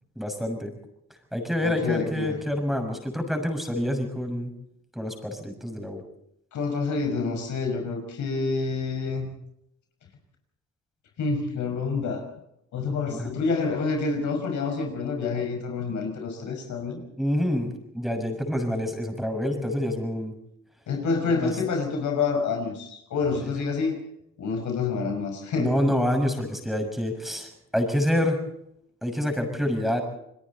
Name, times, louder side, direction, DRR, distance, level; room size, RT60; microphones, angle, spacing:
voice 1, 0.2-0.7 1.3-4.5 4.9-6.0 13.1-13.3 17.2-20.3 21.4-21.5 25.6-28.4 29.0-30.0, left 1 dB, ahead, 4 dB, 6.4 m, -27 dB
voice 2, 1.6-2.4 6.5-9.3 11.2-12.3 12.7-17.0 20.9-23.9 24.4-25.7, left 4 dB, 70° left, 3 dB, 5.8 m, -28 dB
29.0 x 21.0 x 4.2 m, 0.79 s
cardioid pair, 90°, 30 cm